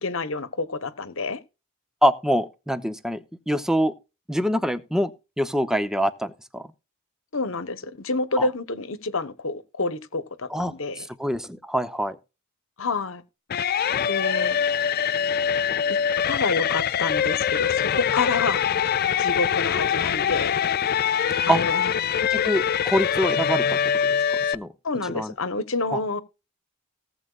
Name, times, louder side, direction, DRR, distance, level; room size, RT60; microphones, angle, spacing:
voice 1, 0.0-1.4 7.3-11.1 12.8-13.2 14.1-14.6 15.9-16.0 16.3-18.9 19.2-20.6 21.5-21.9 24.8-26.2, left 3 dB, 65° left, 1.2 m, -28 dB
voice 2, 2.0-3.9 4.3-5.1 5.4-6.6 8.4-8.5 10.5-10.7 11.0-12.2 21.5-21.6 22.3-23.8 24.5-24.7 25.1-25.3 25.9-26.0, equal, ahead, 0.8 m, -24 dB
sound 1, 13.5-24.5, left 8 dB, 45° left, 0.4 m, -23 dB
18.5 x 7.8 x 2.5 m
head